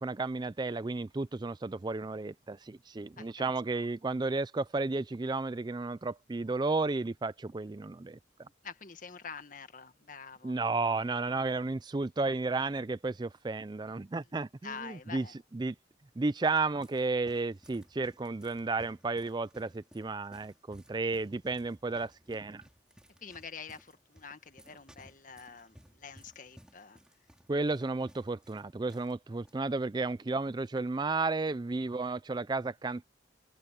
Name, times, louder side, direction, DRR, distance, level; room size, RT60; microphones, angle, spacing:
voice 1, 0.0-8.2 10.4-15.3 15.5-15.7 16.2-22.6 27.5-33.0, right 3 dB, 25° right, 0.4 m, -33 dB
voice 2, 3.2-3.5 8.6-10.5 14.6-15.3 21.1-21.2 23.2-27.0, left 5 dB, 45° left, 1.7 m, -46 dB
sound 1, 16.3-29.1 29.4-29.6 30.3-30.6, equal, 5° right, 3.3 m, -59 dB
open air
head